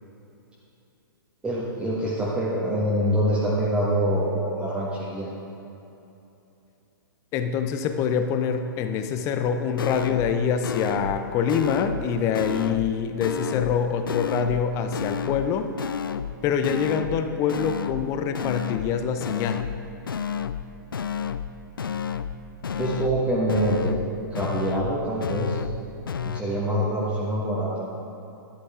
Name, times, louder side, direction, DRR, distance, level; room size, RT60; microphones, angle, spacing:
voice 1, 1.4-5.3 22.8-23.9 24.3-25.6 26.2-27.9, right 1 dB, 10° right, -8 dB, 1.4 m, -25 dB
voice 2, 7.3-15.7 16.4-19.6, left 7 dB, 25° left, 8 dB, 0.6 m, -25 dB
sound 1, 9.8-10.3 10.6-11.2 11.5-12.1 12.3-12.9 13.2-13.8 14.1-14.6 14.9-15.5 15.8-16.3 16.6-17.2 17.5-18.1 18.3-18.9 19.2-19.8 20.1-20.6 20.9-21.5 21.8-22.4 22.6-23.2 23.5-24.1 24.3-24.9 25.2-25.8 26.1-26.4, left 7 dB, 70° left, 0.4 m, -31 dB
11.5 x 9.3 x 3.7 m, 2.9 s
figure-of-eight pair, 115°, 12 cm